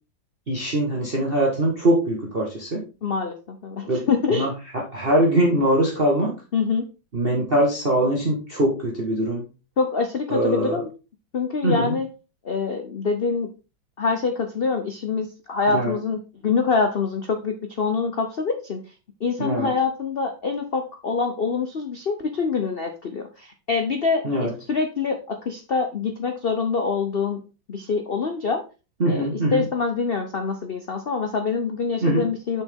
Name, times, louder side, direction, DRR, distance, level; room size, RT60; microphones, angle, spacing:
voice 1, 0.5-2.9 3.9-4.0 4.3-6.4 7.1-9.5 10.3-10.8 11.6-12.0 15.7-16.0 19.4-19.7 24.2-24.5 29.0-29.6 32.0-32.2, right 1 dB, 30° right, -2 dB, 1.5 m, -22 dB
voice 2, 3.0-4.5 6.5-6.8 9.8-10.9 11.3-12.1 12.4-13.5 14.0-18.8 19.2-27.4 27.7-28.6 29.1-32.6, left 5 dB, 80° left, 5 dB, 0.5 m, -25 dB
6.4 x 6.3 x 3.6 m, 0.32 s
omnidirectional pair, 2.1 m